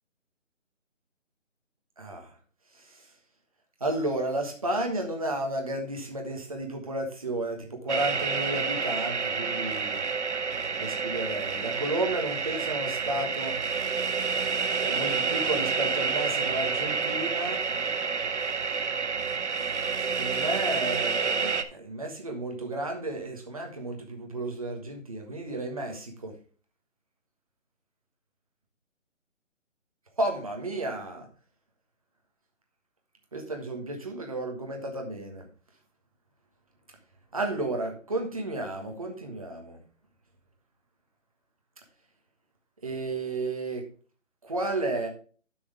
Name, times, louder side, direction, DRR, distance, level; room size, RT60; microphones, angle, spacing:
voice 1, 2.0-2.3 2.8-3.0 3.8-10.1 10.8-13.6 14.8-17.6 20.0-26.3 30.2-31.3 33.3-35.4 37.3-39.8 42.8-43.8 44.4-45.1, right 2 dB, 25° right, 2 dB, 1.4 m, -32 dB
sound 1, 7.9-21.6, right 5 dB, 60° right, 0.9 m, -29 dB
11.0 x 6.2 x 3.4 m, 0.39 s
hypercardioid pair, 180°, 39 cm